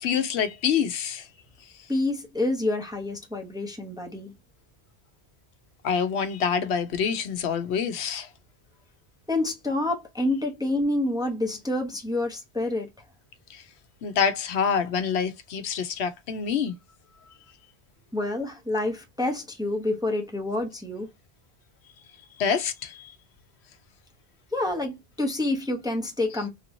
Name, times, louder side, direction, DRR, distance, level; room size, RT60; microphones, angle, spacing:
voice 1, 0.0-1.3 5.8-8.3 13.5-13.6 14.0-16.7 22.4-23.1, left 7 dB, 80° left, 0.9 m, -26 dB
voice 2, 1.9-4.3 9.3-12.9 18.1-21.1 24.5-26.5, left 2 dB, 5° right, 0.7 m, -28 dB
3.4 x 2.9 x 2.6 m
omnidirectional pair, 1.1 m